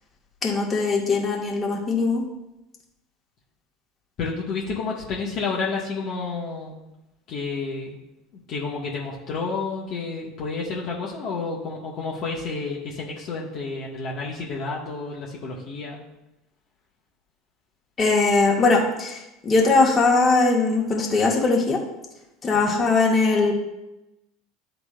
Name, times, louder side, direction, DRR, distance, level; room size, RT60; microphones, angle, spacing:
voice 1, 0.4-2.2 18.0-21.8 22.4-23.5, left 3 dB, 30° left, -2 dB, 1.7 m, -20 dB
voice 2, 4.2-6.8 7.3-8.0 8.5-16.0 22.5-22.8, left 4 dB, 50° left, -4 dB, 1.5 m, -30 dB
11.0 x 3.9 x 2.5 m, 0.94 s
hypercardioid pair, 75°, 0 cm